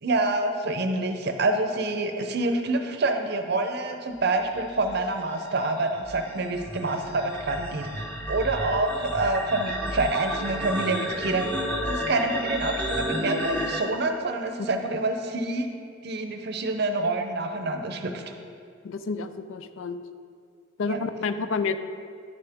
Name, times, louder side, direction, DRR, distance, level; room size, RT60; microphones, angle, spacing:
voice 1, 0.0-7.9 8.3-11.5 11.8-15.7 16.0-18.3 20.9-21.0, right 2 dB, 50° right, 6 dB, 0.6 m, -27 dB
sound 1, 4.5-13.8, equal, 5° left, 0.8 m, -32 dB
voice 2, 18.8-20.0 20.8-21.8, left 4 dB, 75° left, 11 dB, 0.4 m, -29 dB
9.6 x 6.7 x 3.5 m, 2.2 s
head